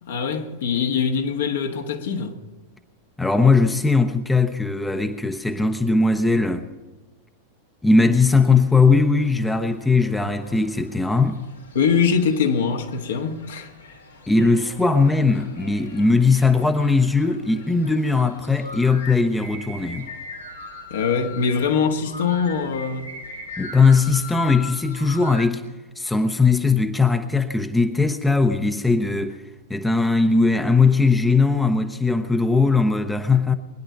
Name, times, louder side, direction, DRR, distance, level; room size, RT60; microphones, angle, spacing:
voice 1, 0.0-2.3 11.7-13.7 20.9-23.1, left 6 dB, 60° left, 1.6 m, -23 dB
voice 2, 3.2-6.7 7.8-11.4 14.3-20.1 23.6-25.6 26.0-29.4 29.7-33.5, left 4 dB, 5° left, 0.8 m, -19 dB
sound 1, 7.9-25.5, left 3 dB, 75° left, 2.4 m, -41 dB
22.0 x 10.5 x 5.6 m
figure-of-eight pair, 90°, 0 cm